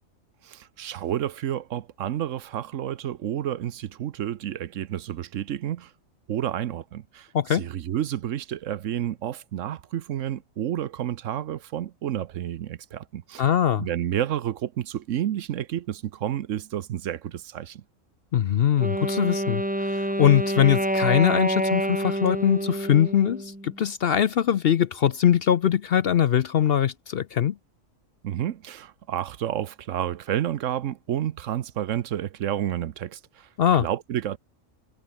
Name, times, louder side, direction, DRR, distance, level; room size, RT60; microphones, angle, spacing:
voice 1, 0.4-5.9 6.3-13.5 13.8-17.8 28.2-34.4, right 11 dB, 70° right, 1.1 m, -30 dB
voice 2, 7.3-7.7 13.4-13.9 18.3-27.5 33.6-33.9, left 9 dB, 55° left, 0.7 m, -22 dB
Wind instrument woodwind instrument, 18.8-23.8, right 1 dB, 5° right, 2.1 m, -27 dB
omnidirectional pair, 1.4 m